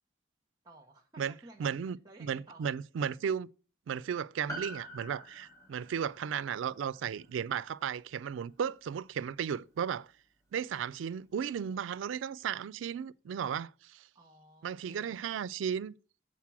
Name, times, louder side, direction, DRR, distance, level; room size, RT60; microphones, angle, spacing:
voice 1, 0.6-2.7 14.1-15.2, right 2 dB, 25° right, 0.8 m, -55 dB
voice 2, 1.6-3.5 3.9-10.1 10.5-14.1 14.6-16.0, right 7 dB, 85° right, 0.3 m, -35 dB
Piano, 4.5-9.1 9.3-9.4, right 1 dB, 15° left, 1.0 m, -47 dB
7.3 x 4.0 x 5.9 m
head